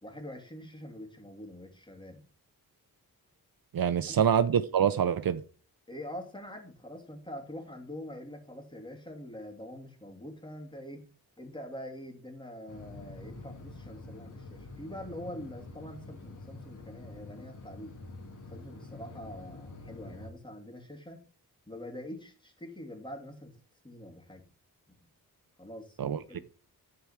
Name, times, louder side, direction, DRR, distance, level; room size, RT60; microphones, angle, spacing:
voice 1, 0.0-2.2 4.1-4.2 5.9-11.0 11.4-18.0 18.5-21.2 21.7-23.6 23.8-24.5 24.9-25.1 25.6-26.4, left 1 dB, 15° left, 2.9 m, -44 dB
voice 2, 3.7-5.4 26.0-26.4, right 8 dB, 65° right, 0.8 m, -26 dB
sound 1, 12.7-20.3, left 2 dB, 55° left, 2.4 m, -46 dB
12.0 x 4.8 x 7.4 m
wide cardioid pair, 115°, 37 cm